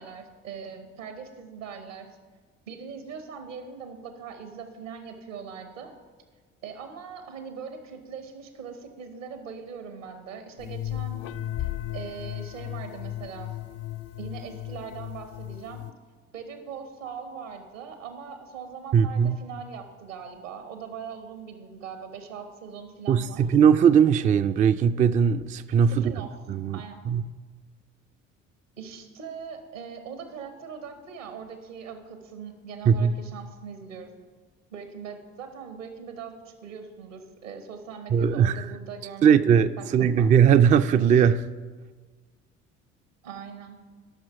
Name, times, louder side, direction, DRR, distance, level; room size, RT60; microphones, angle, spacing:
voice 1, 0.0-2.1 2.7-5.9 6.6-11.2 11.6-13.5 14.2-15.9 16.3-23.4 25.9-26.3 26.7-27.0 28.8-34.1 34.7-39.9 40.2-40.3 43.2-43.8, right 6 dB, 80° right, 1.3 m, -41 dB
sound 1, 10.6-15.9, left 13 dB, 40° left, 0.5 m, -35 dB
voice 2, 18.9-19.4 23.1-26.1 26.5-26.8 27.1-27.2 32.9-33.2 38.1-38.6 39.2-41.4, right 7 dB, 20° right, 0.3 m, -19 dB
12.5 x 6.2 x 5.8 m
figure-of-eight pair, 50°, 38 cm